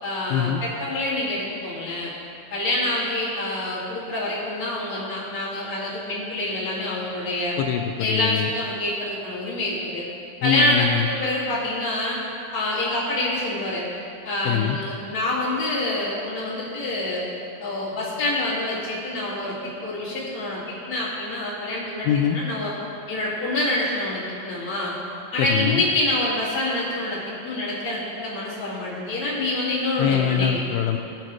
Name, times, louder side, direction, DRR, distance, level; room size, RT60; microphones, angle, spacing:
voice 1, 0.0-2.1 2.5-7.6 8.0-10.0 10.4-12.2 12.5-13.8 14.2-17.2 17.6-19.6 19.8-20.6 20.9-22.7 23.1-24.9 25.3-30.6, left 1 dB, 30° left, -7 dB, 2.2 m, -26 dB
voice 2, 7.6-8.5 10.4-11.1 14.4-14.8 22.1-22.4 25.5-25.8 30.0-31.0, left 10 dB, 85° left, 4 dB, 2.3 m, -23 dB
18.0 x 6.5 x 3.1 m, 2.5 s
omnidirectional pair, 4.2 m